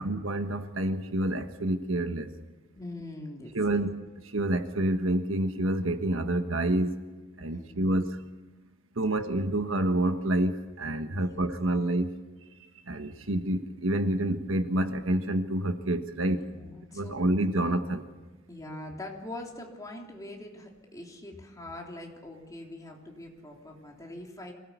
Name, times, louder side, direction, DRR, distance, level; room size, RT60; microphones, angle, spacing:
voice 1, 0.0-2.3 3.5-3.9 4.3-6.9 7.4-8.1 9.0-12.1 12.9-16.4 16.9-18.0, right 1 dB, 70° right, 1.4 m, -28 dB
voice 2, 2.7-3.8 7.5-8.0 11.1-11.4 16.5-17.3 18.5-24.5, left 1 dB, 15° left, 3.2 m, -43 dB
25.5 x 18.0 x 8.3 m
head